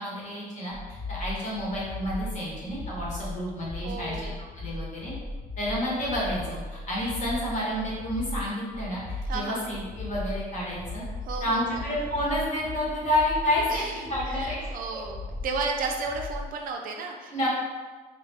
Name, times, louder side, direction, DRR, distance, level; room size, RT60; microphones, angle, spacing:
voice 1, 0.0-5.1 5.6-9.0 9.3-11.0 11.4-15.0 17.3-17.5, left 1 dB, 45° left, -5 dB, 1.2 m, -30 dB
sound 1, 0.7-16.6, left 2 dB, 10° left, 0.3 m, -37 dB
voice 2, 3.8-4.4 9.3-9.6 11.3-11.9 13.7-17.3, right 4 dB, 55° right, 2 dB, 0.4 m, -33 dB
3.1 x 2.4 x 3.3 m, 1.4 s
cardioid pair, 110°, 17 cm